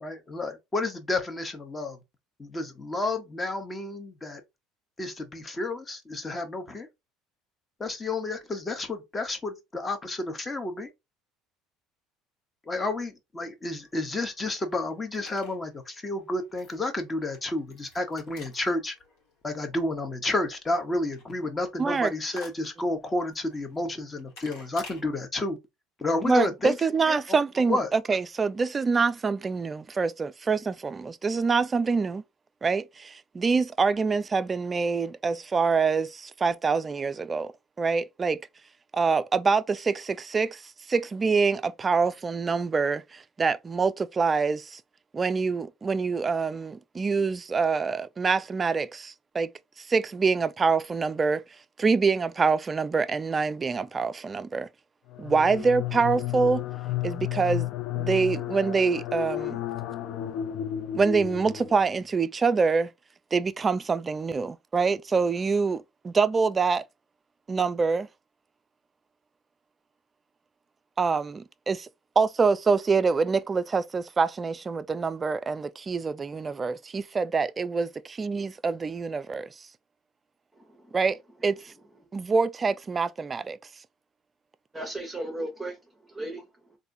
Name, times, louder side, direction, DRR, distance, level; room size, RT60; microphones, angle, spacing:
voice 1, 0.0-2.0 2.4-4.4 5.0-6.9 7.8-10.9 12.7-18.9 19.4-25.6 26.0-26.8 27.1-27.4 27.7-27.9, left 2 dB, 25° left, 0.9 m, -31 dB
sound 1, 13.8-25.0, left 3 dB, 85° left, 1.4 m, -53 dB
voice 2, 21.8-22.1 26.2-32.2 32.6-37.5 37.8-38.4 38.9-44.8 45.1-49.5 49.8-51.4 51.8-54.7 55.2-56.6 57.0-57.7 58.0-59.6 60.9-62.9 63.3-66.8 67.5-68.1 71.0-71.9 72.2-77.9 78.2-79.5 80.9-81.7 82.1-83.6, right 4 dB, 25° right, 0.3 m, -25 dB
sound 2, 55.1-62.0, left 13 dB, 60° left, 0.4 m, -32 dB
voice 3, 80.5-81.0 81.4-81.5 84.7-86.8, right 1 dB, 5° right, 0.8 m, -37 dB
3.4 x 2.6 x 2.6 m
supercardioid pair, 95°, 0 cm